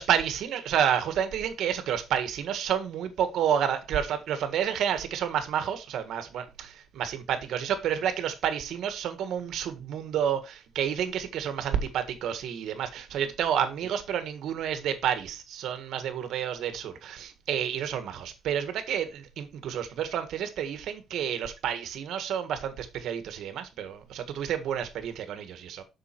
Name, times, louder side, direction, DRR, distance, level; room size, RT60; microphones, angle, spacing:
voice 1, 0.0-25.8, right 9 dB, 75° right, 1.6 m, -30 dB
7.5 x 6.2 x 4.5 m
cardioid pair, 125°, 0 cm